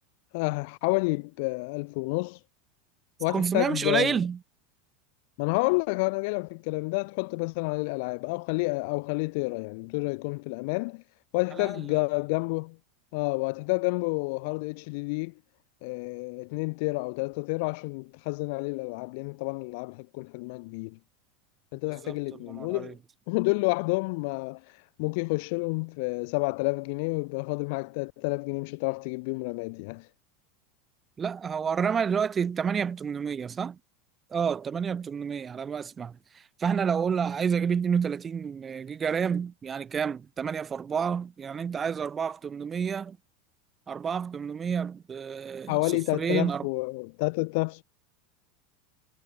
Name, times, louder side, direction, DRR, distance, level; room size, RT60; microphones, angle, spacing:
voice 1, 0.3-2.4 3.2-4.2 5.4-11.0 11.3-12.8 13.1-15.3 15.8-21.0 21.7-23.0 23.3-24.6 25.0-30.1 45.7-47.8, left 29 dB, 65° left, 0.8 m, -29 dB
voice 2, 3.3-4.4 11.6-12.0 21.9-22.9 31.2-33.8 34.3-43.2 43.9-46.7, right 7 dB, 20° right, 0.5 m, -29 dB
supercardioid pair, 135°, 0 cm